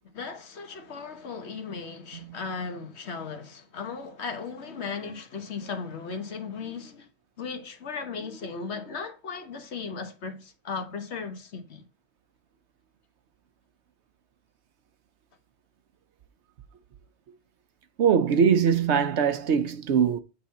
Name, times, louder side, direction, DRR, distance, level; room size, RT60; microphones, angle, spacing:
voice 1, 0.1-7.1 7.4-11.8, left 5 dB, 75° left, 1.4 m, -36 dB
voice 2, 18.0-20.2, right 7 dB, 80° right, 1.1 m, -22 dB
8.4 x 3.9 x 4.1 m
omnidirectional pair, 1.2 m